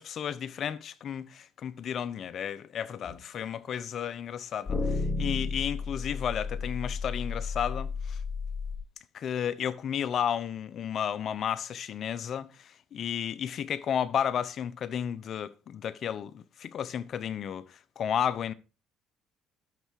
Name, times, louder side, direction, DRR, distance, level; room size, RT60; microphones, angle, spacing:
voice 1, 0.0-8.2 9.1-18.5, left 8 dB, 55° left, 0.8 m, -33 dB
sound 1, 3.1-3.2 4.7-8.8, left 4 dB, 25° left, 4.6 m, -32 dB
12.0 x 6.8 x 4.7 m
supercardioid pair, 85°, 0 cm